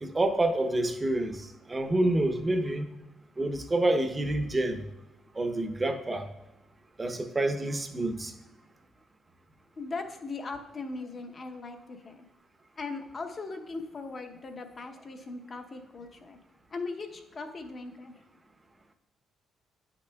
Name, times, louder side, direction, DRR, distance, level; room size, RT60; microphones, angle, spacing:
voice 1, 0.0-2.9 3.4-4.8 5.4-6.3 7.0-8.3, right 1 dB, 20° right, 7 dB, 0.7 m, -28 dB
voice 2, 9.8-12.3 12.8-16.4 16.7-18.1, left 3 dB, 40° left, 5 dB, 0.7 m, -39 dB
9.4 x 5.9 x 2.3 m, 0.97 s
cardioid pair, 90°, 0 cm